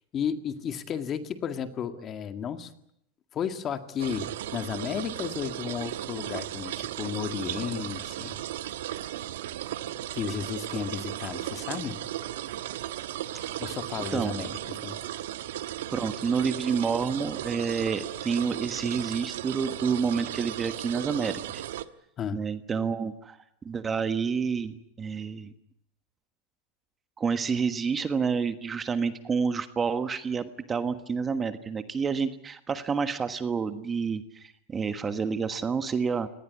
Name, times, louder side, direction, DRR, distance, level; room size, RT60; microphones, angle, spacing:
voice 1, 0.1-2.7 3.3-4.3 4.5-8.4 10.0-12.0 13.6-15.0 22.2-22.4, left 8 dB, 30° left, 9 dB, 1.9 m, -33 dB
sound 1, 4.0-21.8, right 12 dB, 80° right, 1.2 m, -36 dB
voice 2, 15.9-21.6 22.3-23.4 23.6-25.5 27.2-36.3, right 5 dB, 20° right, 10 dB, 1.3 m, -29 dB
24.5 x 19.0 x 9.6 m, 0.76 s
supercardioid pair, 135°, 0 cm